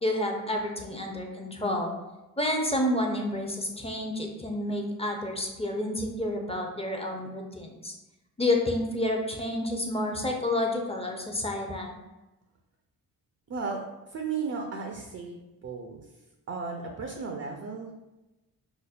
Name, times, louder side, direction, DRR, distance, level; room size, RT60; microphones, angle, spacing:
voice 1, 0.0-1.9 2.4-7.9 8.4-12.0, left 1 dB, 15° left, 1 dB, 0.6 m, -29 dB
voice 2, 13.5-16.0 16.5-17.9, right 5 dB, 35° right, 2 dB, 0.5 m, -35 dB
5.1 x 2.0 x 2.4 m, 1.0 s
supercardioid pair, 50°, 45 cm